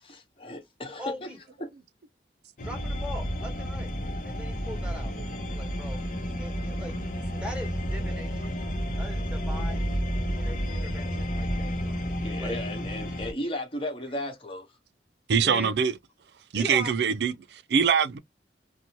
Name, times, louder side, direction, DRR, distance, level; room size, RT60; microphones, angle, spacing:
voice 1, 0.0-1.3 1.6-1.7 12.2-14.7, left 1 dB, 30° left, 1.0 m, -35 dB
voice 2, 1.0-1.4 2.6-3.9 4.2-5.1 5.5-6.0 6.4-6.9 7.4-8.6 9.0-9.9 10.3-12.1 12.4-12.5 15.4-15.7 16.6-16.9, left 1 dB, 5° right, 1.0 m, -40 dB
sound 1, 2.6-13.3, equal, 45° left, 0.7 m, -31 dB
voice 3, 15.3-15.9 16.5-18.2, right 6 dB, 70° right, 0.4 m, -23 dB
2.7 x 2.1 x 2.9 m
head